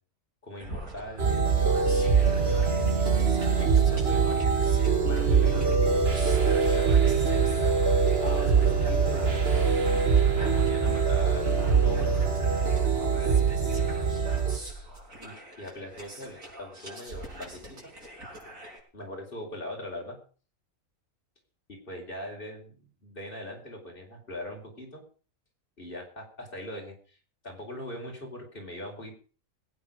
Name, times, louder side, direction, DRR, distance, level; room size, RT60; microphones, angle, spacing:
voice 1, 0.4-1.8 3.1-4.5 5.1-7.3 8.2-9.7 10.2-12.2 13.0-13.5 15.2-17.9 18.9-20.2 21.7-22.6 23.0-25.0 25.8-27.2 27.4-29.2, left 1 dB, 40° left, 1 dB, 4.9 m, -41 dB
sound 1, 0.6-18.8, right 1 dB, 85° right, 6.2 m, -44 dB
sound 2, 1.2-14.6, right 5 dB, 50° right, 1.9 m, -23 dB
21.5 x 9.6 x 5.2 m, 0.40 s
omnidirectional pair, 1.4 m